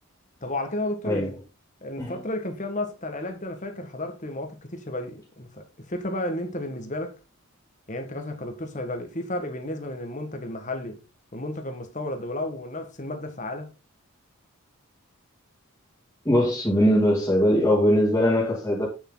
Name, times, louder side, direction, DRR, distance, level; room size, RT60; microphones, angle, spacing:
voice 1, 0.4-1.3 1.8-7.2 7.9-11.0 11.3-13.7, left 1 dB, 35° left, 1.7 m, -32 dB
voice 2, 16.2-18.9, equal, 10° left, 2.6 m, -21 dB
8.9 x 7.4 x 4.0 m
head